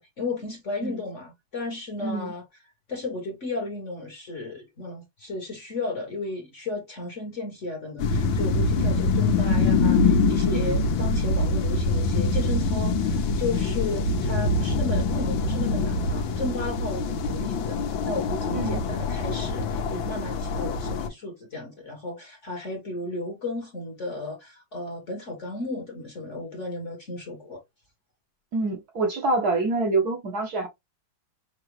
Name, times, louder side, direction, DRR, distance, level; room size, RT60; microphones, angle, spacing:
voice 1, 0.0-2.4 2.9-17.8 18.0-27.6, left 2 dB, 45° left, 1.2 m, -34 dB
voice 2, 2.0-2.3 18.5-18.8 28.5-30.7, right 3 dB, 55° right, 1.3 m, -26 dB
sound 1, 8.0-21.1, left 3 dB, 75° left, 1.6 m, -24 dB
5.9 x 2.3 x 3.0 m
omnidirectional pair, 2.2 m